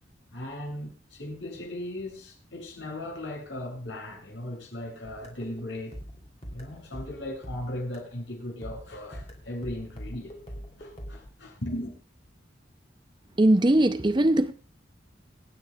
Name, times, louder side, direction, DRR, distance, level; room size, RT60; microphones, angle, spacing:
voice 1, 0.3-6.0 6.5-10.3 10.8-12.0, left 1 dB, 75° left, 7.7 m, -37 dB
sound 1, 5.0-8.2 8.6-11.3, equal, 35° left, 3.1 m, -43 dB
voice 2, 13.4-14.5, right 1 dB, 25° right, 0.6 m, -20 dB
26.0 x 9.4 x 2.4 m
head